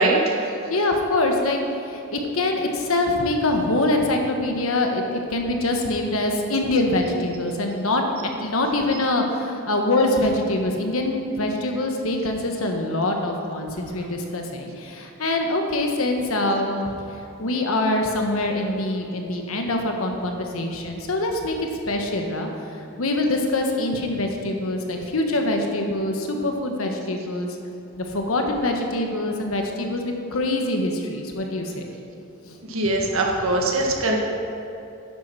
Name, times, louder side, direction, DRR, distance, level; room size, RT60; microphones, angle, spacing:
voice 1, 0.0-0.5 32.7-34.2, right 2 dB, 70° right, -1 dB, 1.7 m, -21 dB
voice 2, 0.7-8.0 8.4-16.9 17.4-22.5 22.8-27.6 28.0-31.9 32.4-32.6, left 2 dB, 75° left, 3 dB, 1.3 m, -24 dB
10.5 x 7.5 x 6.1 m, 2.8 s
head